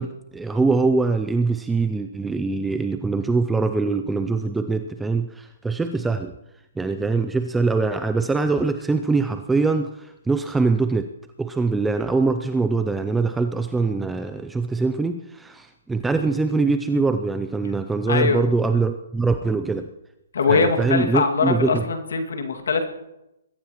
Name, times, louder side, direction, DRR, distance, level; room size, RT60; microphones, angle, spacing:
voice 1, 0.0-6.4 6.8-11.1 11.4-19.9 20.5-21.8, right 3 dB, 5° right, 8 dB, 0.4 m, -23 dB
voice 2, 18.1-18.5 20.3-22.9, left 4 dB, 80° left, 5 dB, 2.1 m, -22 dB
22.0 x 14.0 x 3.0 m, 0.91 s
hypercardioid pair, 165°, 0 cm